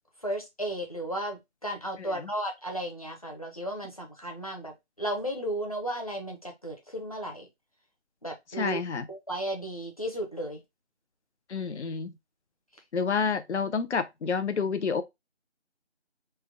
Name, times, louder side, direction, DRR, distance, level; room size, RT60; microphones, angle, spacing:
voice 1, 0.2-4.7 5.0-7.5 8.2-8.8 9.1-10.6, right 1 dB, 35° left, 0.6 m, -34 dB
voice 2, 8.5-9.0 11.5-12.1 12.9-15.0, left 5 dB, 85° left, 0.5 m, -29 dB
3.3 x 2.2 x 3.5 m
figure-of-eight pair, 165°, 34 cm